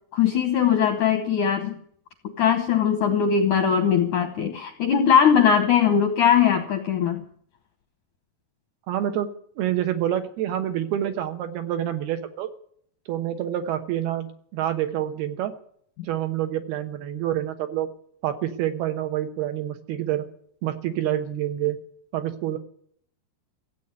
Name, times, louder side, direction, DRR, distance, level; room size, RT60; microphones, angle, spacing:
voice 1, 0.1-1.8 2.4-7.2, left 8 dB, 70° left, 6 dB, 1.9 m, -20 dB
voice 2, 8.9-9.3 9.6-12.5 13.1-15.5 16.0-17.9 18.2-20.3 20.6-21.8 22.1-22.6, right 11 dB, 70° right, 7 dB, 2.8 m, -27 dB
16.0 x 8.4 x 9.6 m, 0.62 s
omnidirectional pair, 5.0 m